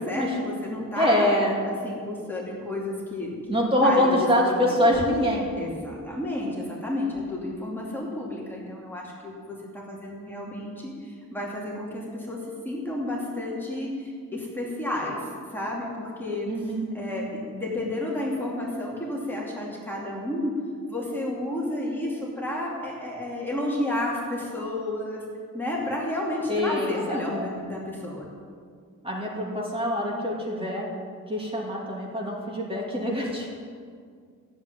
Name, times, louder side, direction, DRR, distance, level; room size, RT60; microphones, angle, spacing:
voice 1, 0.0-1.3 1.7-4.1 4.4-4.7 5.6-20.5 20.9-25.3 25.5-28.3, left 1 dB, 5° left, -4 dB, 2.6 m, -31 dB
voice 2, 1.0-1.6 3.5-5.5 16.5-16.8 26.5-27.5 29.0-30.9 31.3-33.5, left 1 dB, 15° right, -3 dB, 2.7 m, -24 dB
15.0 x 8.0 x 9.8 m, 2.1 s
wide cardioid pair, 155°, 32 cm